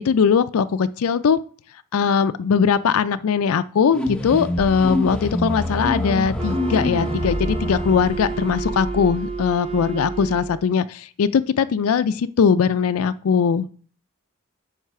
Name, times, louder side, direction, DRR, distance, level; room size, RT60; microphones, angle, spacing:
voice 1, 0.0-1.4 1.9-13.7, left 6 dB, 90° left, 12 dB, 0.4 m, -20 dB
sound 1, 3.9-10.6, left 1 dB, 5° left, 0.8 m, -27 dB
Wind instrument woodwind instrument, 6.4-10.7, right 6 dB, 30° right, 0.5 m, -31 dB
9.4 x 3.3 x 5.6 m, 0.43 s
head